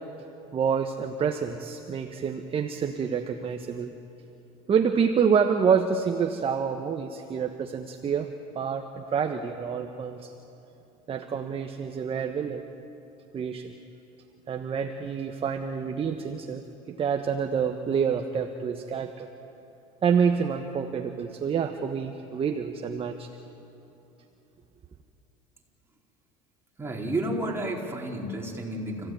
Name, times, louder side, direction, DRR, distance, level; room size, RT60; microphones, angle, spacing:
voice 1, 0.5-3.9 4.7-8.3 8.5-10.3 11.1-12.6 13.3-13.7 14.5-19.3 20.0-23.3, right 6 dB, 35° right, 5 dB, 1.3 m, -27 dB
voice 2, 26.8-29.1, right 1 dB, 15° right, -1 dB, 4.4 m, -31 dB
29.5 x 16.0 x 9.3 m, 3.0 s
supercardioid pair, 100°, 17 cm